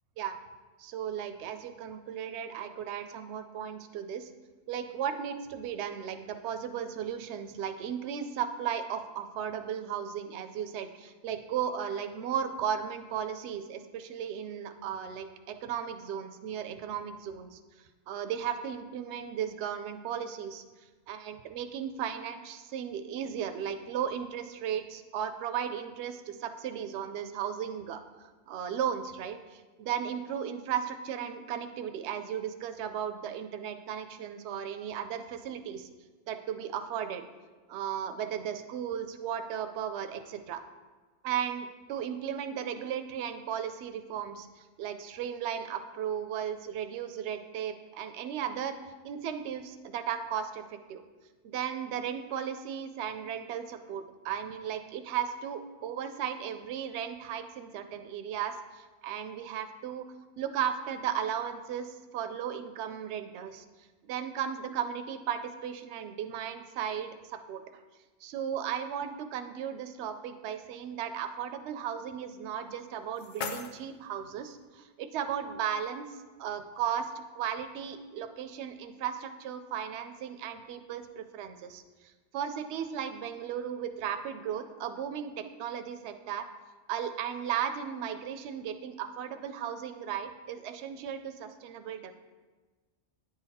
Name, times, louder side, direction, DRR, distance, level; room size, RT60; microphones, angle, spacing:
voice 1, 0.8-4.3 4.7-17.6 18.1-20.6 21.1-28.0 28.5-35.9 36.3-37.2 37.7-40.6 41.2-48.8 49.0-51.0 51.4-60.0 60.4-63.6 64.0-67.6 68.2-81.8 82.3-86.4 86.9-92.1, right 8 dB, 65° right, 9 dB, 0.8 m, -35 dB
sound 1, 72.7-74.7, left 6 dB, 65° left, 0.5 m, -42 dB
9.4 x 4.0 x 4.2 m, 1.3 s
omnidirectional pair, 1.3 m